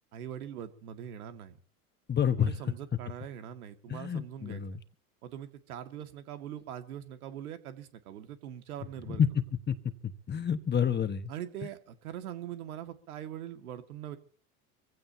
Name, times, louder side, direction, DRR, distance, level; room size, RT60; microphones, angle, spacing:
voice 1, 0.1-1.6 2.4-4.6 5.2-9.2 11.3-14.2, right 10 dB, 80° right, 7 dB, 2.1 m, -42 dB
voice 2, 2.1-2.5 3.9-4.8 9.2-9.3 9.7-9.8 10.0-11.3, left 8 dB, 25° left, 10 dB, 1.4 m, -28 dB
25.0 x 16.0 x 2.8 m, 0.40 s
hypercardioid pair, 95°, 43 cm